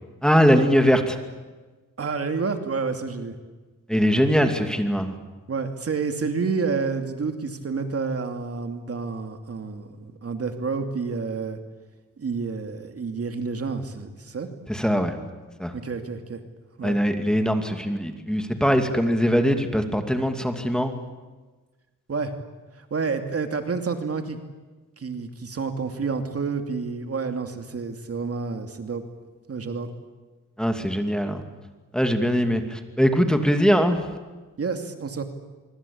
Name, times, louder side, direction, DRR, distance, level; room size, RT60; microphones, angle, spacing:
voice 1, 0.2-1.2 3.9-5.2 14.7-15.2 15.6-15.7 16.8-20.9 30.6-31.4 31.9-34.1, equal, ahead, 5 dB, 2.6 m, -21 dB
voice 2, 2.0-3.4 5.5-11.6 12.2-14.5 15.7-16.4 16.8-17.0 22.1-22.3 22.9-24.4 25.0-29.0 29.5-29.9 34.6-35.2, right 4 dB, 45° right, 6 dB, 2.6 m, -29 dB
25.5 x 24.0 x 8.7 m, 1.3 s
cardioid pair, 95°, 32 cm